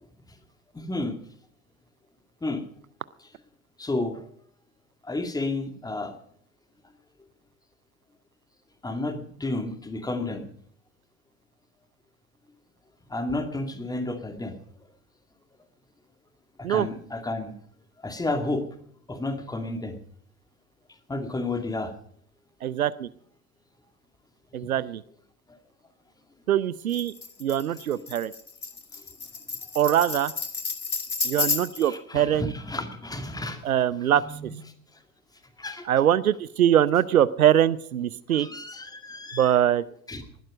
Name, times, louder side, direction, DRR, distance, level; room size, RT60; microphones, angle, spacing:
voice 1, 0.7-1.2 2.4-2.6 3.2-3.3 3.8-4.2 5.0-6.2 8.8-10.5 13.1-14.6 16.6-17.5 18.0-18.7 19.1-20.0 21.1-21.9 27.9-28.1 31.4-31.5 31.8-33.7 34.1-34.5 35.6-35.9 38.3-39.5 40.1-40.2, left 2 dB, 10° left, 7 dB, 2.2 m, -31 dB
voice 2, 22.6-23.1 24.5-25.0 26.5-27.1 27.4-28.3 29.7-30.3 31.2-32.5 33.6-34.2 35.9-38.5 39.3-39.8, right 10 dB, 75° right, 18 dB, 0.7 m, -22 dB
Tambourine, 26.9-31.9, left 4 dB, 85° left, 1.6 m, -31 dB
19.5 x 12.0 x 5.1 m, 0.63 s
figure-of-eight pair, 85°, 43 cm